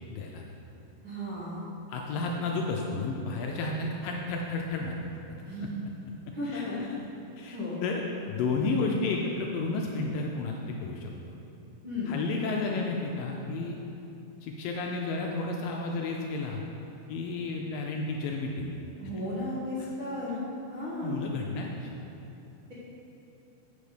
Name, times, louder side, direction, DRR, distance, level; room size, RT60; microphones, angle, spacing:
voice 1, 0.1-0.4 1.9-5.0 6.5-6.6 7.4-11.1 12.1-13.8 14.4-16.6 17.1-18.8 21.0-21.9, left 3 dB, 80° left, 0 dB, 2.1 m, -32 dB
voice 2, 1.0-1.6 5.4-5.8 6.3-6.8 7.5-7.8 11.8-12.3 19.0-20.4 20.7-21.2, left 1 dB, 45° right, -11 dB, 1.9 m, -34 dB
7.6 x 6.7 x 5.0 m, 2.9 s
omnidirectional pair, 4.3 m